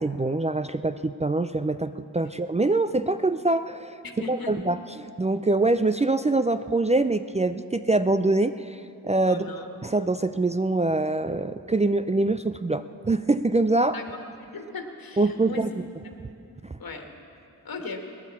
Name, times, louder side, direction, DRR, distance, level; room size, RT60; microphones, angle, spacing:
voice 1, 0.0-3.9 4.3-9.5 9.8-14.0 15.2-15.7, right 2 dB, 15° right, 11 dB, 0.4 m, -24 dB
voice 2, 4.0-4.5 9.3-9.7 13.9-14.2 14.5-15.8 16.8-17.1 17.6-18.0, left 4 dB, 55° left, 4 dB, 1.8 m, -37 dB
17.0 x 11.0 x 7.2 m, 2.6 s
cardioid pair, 45°, 41 cm